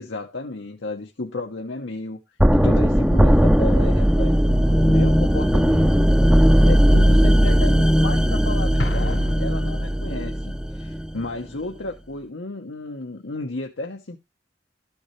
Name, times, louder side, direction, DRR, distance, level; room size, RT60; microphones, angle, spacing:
voice 1, 0.0-2.2 2.5-6.1 6.6-14.2, left 2 dB, 85° left, 1.1 m, -33 dB
sound 1, 2.4-11.3, equal, 5° right, 0.5 m, -17 dB
Explosion, 8.8-10.4, left 2 dB, 60° left, 0.9 m, -32 dB
13.0 x 7.1 x 3.2 m
head